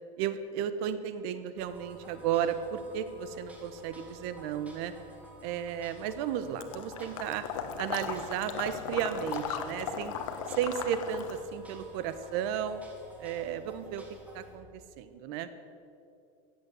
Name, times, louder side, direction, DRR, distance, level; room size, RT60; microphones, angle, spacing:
voice 1, 0.2-4.9 5.4-7.4 7.8-10.2 10.6-12.8 13.2-14.0 14.3-15.5, right 9 dB, 55° right, 11 dB, 1.1 m, -33 dB
sound 1, 1.6-14.6, equal, 10° right, 2.1 m, -53 dB
Water / Liquid, 6.6-11.4, left 7 dB, 80° left, 1.3 m, -37 dB
15.5 x 8.6 x 7.8 m, 2.5 s
supercardioid pair, 160°, 16 cm